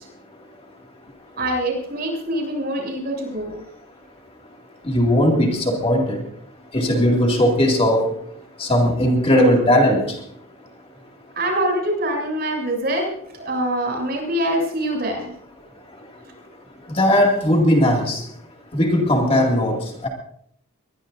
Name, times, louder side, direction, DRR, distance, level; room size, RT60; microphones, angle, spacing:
voice 1, 1.4-3.6 11.4-13.0 13.3-15.3, right 1 dB, 50° right, 1 dB, 7.2 m, -24 dB
voice 2, 4.8-6.2 6.7-8.1 8.6-10.2 16.9-18.2 18.7-20.1, equal, 25° left, 1 dB, 2.3 m, -18 dB
22.0 x 21.0 x 2.6 m, 0.70 s
head